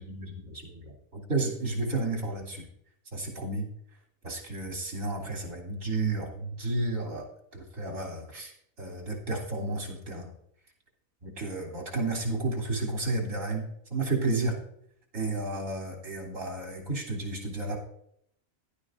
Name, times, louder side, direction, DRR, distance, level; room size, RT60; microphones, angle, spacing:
voice 1, 0.0-2.6 3.1-3.7 4.2-8.5 8.8-10.3 11.2-14.6 15.1-17.8, right 2 dB, 75° right, -1 dB, 3.4 m, -32 dB
15.5 x 11.5 x 2.6 m, 0.70 s
omnidirectional pair, 1.4 m